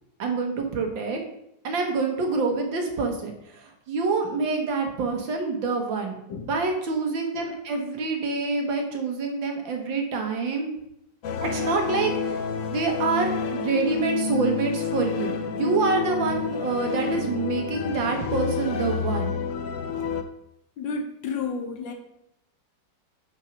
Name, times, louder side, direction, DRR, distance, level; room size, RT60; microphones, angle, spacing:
voice 1, 0.2-1.2 1.6-6.2 6.5-10.7 11.4-12.4 12.7-19.3, right 4 dB, 70° right, 3 dB, 1.9 m, -26 dB
sound 1, 11.2-20.2, left 6 dB, 85° left, 0.6 m, -29 dB
voice 2, 20.8-21.9, left 4 dB, 70° left, 4 dB, 1.6 m, -31 dB
6.2 x 4.6 x 5.9 m, 0.81 s
omnidirectional pair, 2.1 m